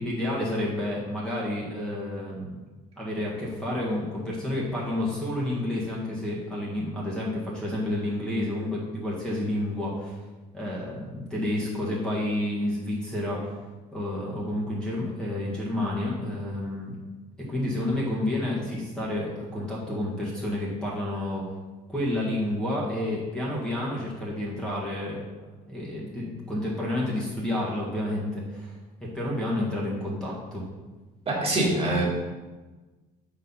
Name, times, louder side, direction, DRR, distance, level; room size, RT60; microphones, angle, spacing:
voice 1, 0.0-2.6 3.0-10.1 10.5-13.5 13.9-17.0 17.4-21.5 21.9-25.2 25.7-30.6, left 1 dB, 5° left, -5 dB, 1.6 m, -30 dB
voice 2, 31.3-32.0, right 1 dB, 35° right, -4 dB, 2.0 m, -24 dB
5.2 x 4.3 x 5.5 m, 1.2 s
cardioid pair, 110°, 17 cm